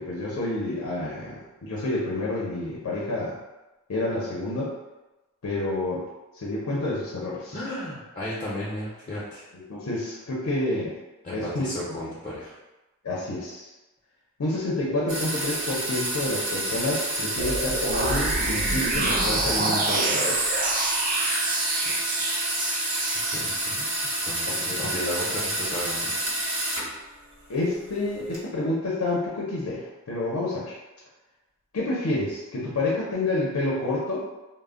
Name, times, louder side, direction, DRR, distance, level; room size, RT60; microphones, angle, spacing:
voice 1, 0.0-3.4 3.9-4.7 5.4-6.0 6.3-7.6 9.5-10.9 11.3-12.0 13.0-13.7 14.4-20.4 24.5-24.9 27.5-30.7 31.7-34.2, left 2 dB, 80° left, -5 dB, 0.6 m, -29 dB
voice 2, 7.5-9.4 11.2-12.5 21.8-21.9 23.3-23.9 24.2-26.3, left 1 dB, 35° left, -9 dB, 0.5 m, -34 dB
sound 1, 15.1-27.0 27.3-28.4, right 1 dB, 75° right, 0.9 m, -29 dB
sound 2, 17.4-23.4, right 2 dB, 40° right, 0.4 m, -27 dB
2.1 x 2.0 x 3.5 m, 1.1 s
head